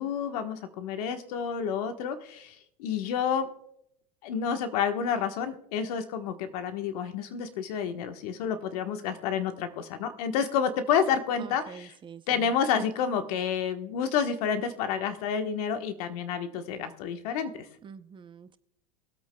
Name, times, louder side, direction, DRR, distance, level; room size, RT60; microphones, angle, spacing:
voice 1, 0.0-3.5 4.2-11.9 12.3-17.7, left 7 dB, 75° left, 1.3 m, -29 dB
voice 2, 11.4-12.5 17.8-18.6, right 7 dB, 25° right, 0.7 m, -46 dB
22.5 x 8.3 x 2.3 m
supercardioid pair, 110°, 20 cm